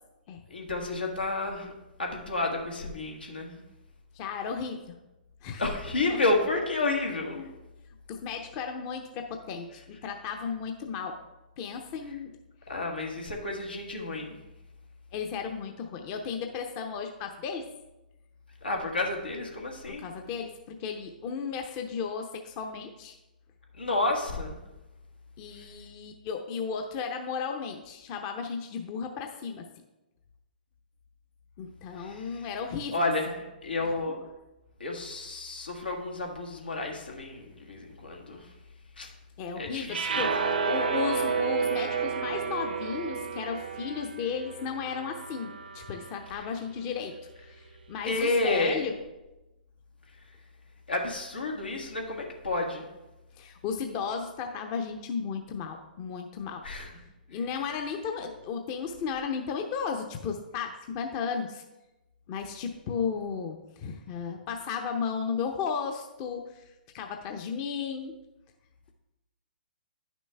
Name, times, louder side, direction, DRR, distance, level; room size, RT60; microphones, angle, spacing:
voice 1, 0.5-1.7 2.0-3.6 5.6-7.5 12.7-14.3 18.6-20.0 23.8-24.6 25.6-25.7 31.9-32.5 32.9-34.2 34.8-38.5 39.0-39.1 39.5-40.3 46.3-46.5 48.1-48.8 50.9-52.9 56.6-56.9 57.3-57.4, left 2 dB, 85° left, 1 dB, 1.6 m, -31 dB
voice 2, 4.1-5.0 5.4-5.6 6.1-6.2 8.1-11.2 11.6-12.4 15.1-17.7 20.0-23.2 25.4-29.7 31.6-33.1 39.4-48.9 53.4-56.6 57.3-61.6 62.3-66.7 66.9-68.1, left 6 dB, 35° left, 4 dB, 0.7 m, -34 dB
sound 1, 39.9-46.2, right 5 dB, 75° right, 0.8 m, -31 dB
10.0 x 6.1 x 3.4 m, 1.0 s
figure-of-eight pair, 120°, 5 cm